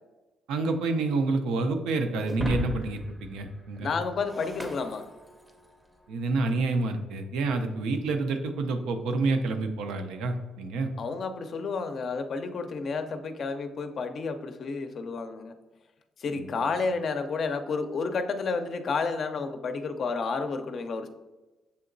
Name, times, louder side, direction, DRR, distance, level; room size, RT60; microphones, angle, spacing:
voice 1, 0.5-3.9 6.1-10.9 16.3-16.4, right 3 dB, 90° right, 7 dB, 0.5 m, -28 dB
Shatter, 2.3-5.7, right 1 dB, 15° right, 0.6 m, -37 dB
voice 2, 3.8-5.1 11.0-15.5 16.2-21.1, left 4 dB, 55° left, 8 dB, 0.4 m, -31 dB
6.8 x 2.8 x 2.6 m, 1.1 s
cardioid pair, 90°, 0 cm